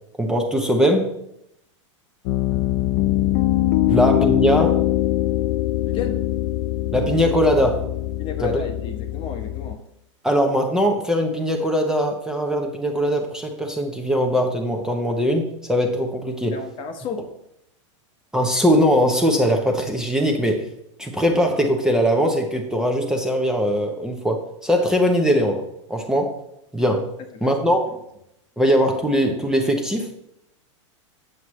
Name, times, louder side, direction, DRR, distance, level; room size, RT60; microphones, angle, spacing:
voice 1, 0.2-1.1 3.9-4.8 6.9-7.8 8.4-8.5 10.2-16.6 18.3-20.6 21.0-25.6 25.9-26.3 26.7-27.1 27.4-27.8 28.6-30.1, equal, 5° right, 2 dB, 0.8 m, -20 dB
Piano, 2.3-9.8, left 15 dB, 50° left, 0.4 m, -22 dB
voice 2, 5.9-6.2 8.2-9.8 16.5-17.3 27.3-27.5, left 5 dB, 30° left, 6 dB, 0.9 m, -32 dB
7.8 x 7.4 x 3.1 m, 0.79 s
supercardioid pair, 130°, 16 cm